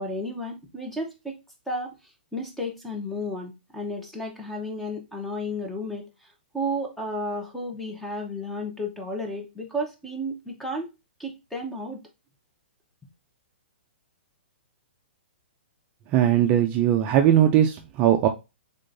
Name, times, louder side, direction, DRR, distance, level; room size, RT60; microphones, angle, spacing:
voice 1, 0.0-1.4 1.7-1.9 2.3-6.3 6.5-10.9 11.2-12.0, equal, 5° left, 2 dB, 0.8 m, -32 dB
voice 2, 16.1-18.3, right 11 dB, 30° right, 5 dB, 0.4 m, -19 dB
3.7 x 3.5 x 2.6 m, 0.25 s
hypercardioid pair, 150°, 6 cm